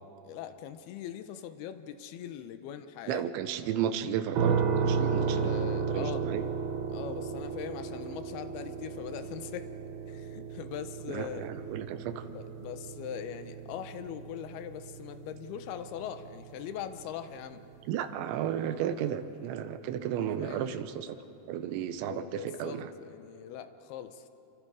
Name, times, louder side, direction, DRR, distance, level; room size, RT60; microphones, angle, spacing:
voice 1, 0.2-3.3 5.0-6.2 6.9-9.7 10.1-11.5 12.3-17.6 20.4-20.9 22.0-24.3, left 9 dB, 75° left, 9 dB, 2.5 m, -41 dB
voice 2, 3.1-6.5 11.1-12.3 17.9-21.2 21.5-22.9, right 9 dB, 85° right, 10 dB, 3.3 m, -34 dB
sound 1, 4.3-17.2, right 6 dB, 65° right, 3.0 m, -34 dB
29.0 x 25.0 x 4.9 m, 2.9 s
omnidirectional pair, 5.2 m